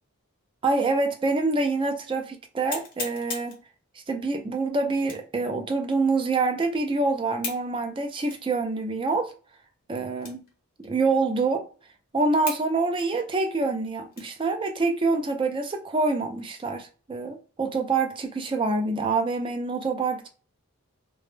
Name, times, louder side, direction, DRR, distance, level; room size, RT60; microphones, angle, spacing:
voice 1, 0.6-3.6 4.1-9.3 9.9-10.4 10.8-11.6 12.1-20.3, right 3 dB, 25° right, 0.3 m, -26 dB
sound 1, 1.3-1.4 1.9-2.0 2.7-3.6 5.0-5.4 5.9-6.0 7.4-7.7 8.3-8.4 9.1-9.2 10.2-10.5 10.8-10.9 11.6-11.7 12.5-12.7 13.0-14.5 15.0-15.1 15.6-16.0, left 4 dB, 40° left, 0.8 m, -37 dB
2.2 x 2.0 x 3.1 m
head